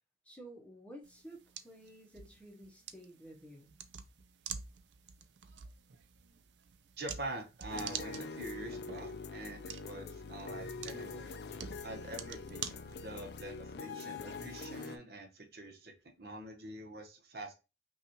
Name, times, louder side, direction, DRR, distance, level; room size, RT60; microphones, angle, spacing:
voice 1, 0.2-1.4 1.6-3.7, right 1 dB, 5° left, 0 dB, 0.8 m, -52 dB
sound 1, 1.0-13.4, right 8 dB, 85° right, 0.4 m, -48 dB
voice 2, 7.0-11.4 11.8-17.5, right 1 dB, 60° right, 4 dB, 1.0 m, -45 dB
sound 2, 7.7-15.0, left 4 dB, 70° left, 0.4 m, -44 dB
5.5 x 2.4 x 2.9 m, 0.28 s
head